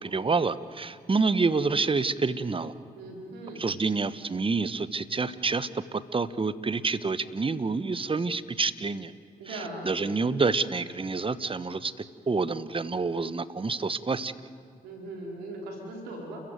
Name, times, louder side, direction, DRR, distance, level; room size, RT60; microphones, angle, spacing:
voice 1, 0.0-2.7 3.6-9.1 9.5-11.9 12.3-14.3, right 4 dB, 35° right, 15 dB, 1.2 m, -28 dB
voice 2, 3.0-3.6 9.4-9.9 14.8-16.4, right 2 dB, 90° right, 0 dB, 4.6 m, -39 dB
30.0 x 14.5 x 9.4 m, 2.5 s
supercardioid pair, 45°, 16 cm